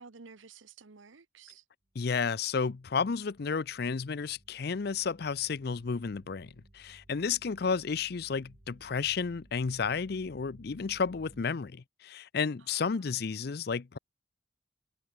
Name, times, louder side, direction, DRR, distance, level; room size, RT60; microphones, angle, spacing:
voice 1, 0.0-1.6 12.7-13.2, right 5 dB, 85° right, 1.0 m, -53 dB
voice 2, 2.0-14.0, left 5 dB, 55° left, 0.5 m, -32 dB
sound 1, 2.4-11.4, right 1 dB, 40° right, 1.5 m, -59 dB
head